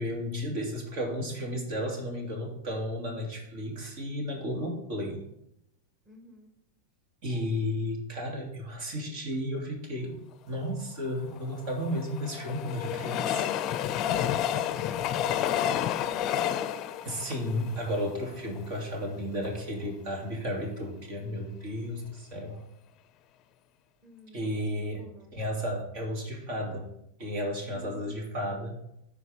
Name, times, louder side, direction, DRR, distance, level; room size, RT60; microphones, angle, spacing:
voice 1, 0.0-5.2 7.2-10.2 10.5-13.5 17.1-22.7 24.3-25.0 25.3-26.9 27.2-28.8, equal, 55° right, 1 dB, 2.5 m, -33 dB
voice 2, 6.0-6.5 13.9-14.4 14.7-16.8 24.0-25.5 27.6-28.5, right 1 dB, 15° right, 0 dB, 1.6 m, -51 dB
Train, 11.4-18.6 19.2-19.3 19.5-19.6, left 10 dB, 40° left, 0.5 m, -30 dB
13.5 x 4.8 x 3.5 m, 0.79 s
hypercardioid pair, 115°, 0 cm